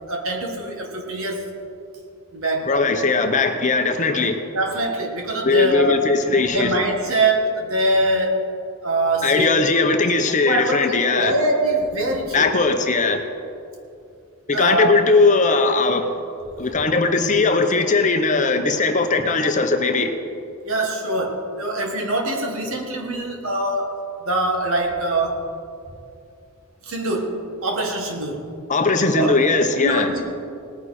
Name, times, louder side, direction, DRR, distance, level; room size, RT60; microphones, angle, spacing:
voice 1, 0.1-1.5 2.3-2.7 4.5-6.1 6.5-8.4 8.8-9.6 10.4-12.5 14.5-15.0 19.4-19.5 20.6-25.5 26.8-28.5 29.2-29.4 29.8-30.3, right 1 dB, 65° right, 1 dB, 1.9 m, -23 dB
voice 2, 2.7-4.5 5.4-6.7 9.2-11.3 12.3-13.3 14.5-16.1 16.6-20.1 28.7-30.1, left 3 dB, 35° left, 6 dB, 0.8 m, -19 dB
18.5 x 9.6 x 4.3 m, 2.5 s
head